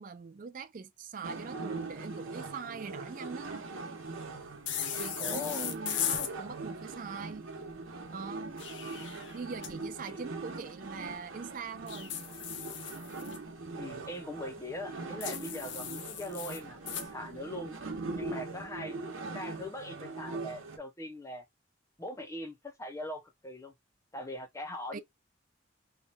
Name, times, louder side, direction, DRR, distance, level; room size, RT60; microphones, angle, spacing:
voice 1, 0.0-3.5 5.0-7.4 8.1-8.6 9.3-12.1 24.9-25.0, right 5 dB, 40° right, 0.4 m, -42 dB
sound 1, 1.2-20.8, right 3 dB, 85° right, 1.0 m, -41 dB
sound 2, 4.7-6.3 8.4-9.7 11.9-13.4 15.2-17.1, left 10 dB, 60° left, 0.5 m, -37 dB
voice 2, 5.2-5.7 10.1-10.2 13.7-17.7 18.1-19.0 19.3-21.5 22.0-23.7 24.1-25.0, left 1 dB, 15° left, 0.5 m, -41 dB
3.0 x 2.2 x 4.1 m
head